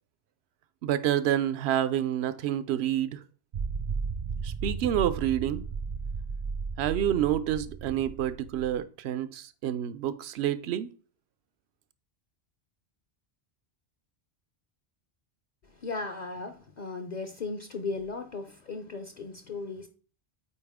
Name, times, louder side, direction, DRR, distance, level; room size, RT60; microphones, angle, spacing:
voice 1, 0.8-3.2 4.4-5.6 6.8-10.9, right 11 dB, 85° right, 0.8 m, -28 dB
sound 1, 3.5-8.8, right 5 dB, 55° right, 0.5 m, -35 dB
voice 2, 15.8-19.9, left 3 dB, 50° left, 0.7 m, -36 dB
8.5 x 4.0 x 3.5 m
omnidirectional pair, 1.1 m